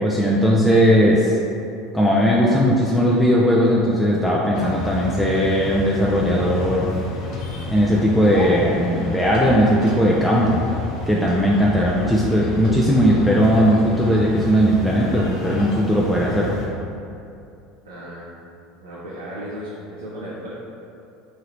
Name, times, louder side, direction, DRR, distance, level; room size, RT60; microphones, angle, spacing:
voice 1, 0.0-1.4 1.9-6.9 7.7-10.6 11.1-16.5, equal, 5° left, -5 dB, 0.3 m, -18 dB
sound 1, 4.5-16.7, left 2 dB, 55° left, 0.7 m, -30 dB
voice 2, 17.8-18.4 18.8-20.5, equal, 90° right, -9 dB, 0.6 m, -35 dB
3.1 x 2.8 x 2.5 m, 2.6 s
hypercardioid pair, 80°, 0 cm